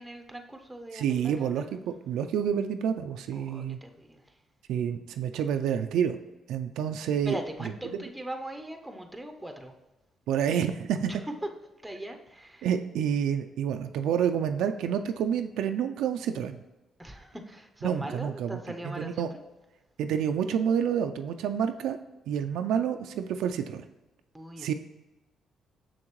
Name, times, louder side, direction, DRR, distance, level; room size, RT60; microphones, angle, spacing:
voice 1, 0.0-1.8 3.3-4.4 7.2-9.7 11.1-11.5 11.8-12.7 17.0-19.3 24.3-24.7, right 1 dB, 5° right, 5 dB, 0.6 m, -40 dB
voice 2, 0.9-3.8 4.7-6.2 6.5-7.4 10.3-11.2 12.6-16.6 17.8-18.6 18.8-19.3 20.0-22.0 22.3-23.8 24.6-24.7, right 8 dB, 85° right, 7 dB, 0.3 m, -28 dB
6.5 x 6.2 x 3.1 m, 1.1 s
cardioid pair, 90°, 0 cm